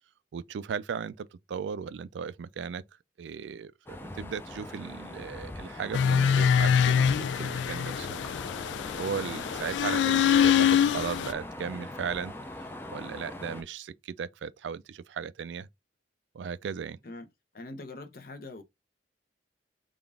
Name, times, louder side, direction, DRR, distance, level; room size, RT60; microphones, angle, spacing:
voice 1, 0.3-2.8 3.2-8.1 9.0-15.7 16.3-17.0, right 6 dB, 90° right, 0.3 m, -36 dB
sound 1, 3.9-13.6, left 1 dB, 10° left, 0.4 m, -41 dB
sound 2, 5.9-11.3, left 8 dB, 85° left, 0.3 m, -24 dB
voice 2, 17.5-18.6, left 2 dB, 55° left, 0.7 m, -42 dB
3.8 x 2.4 x 3.3 m
head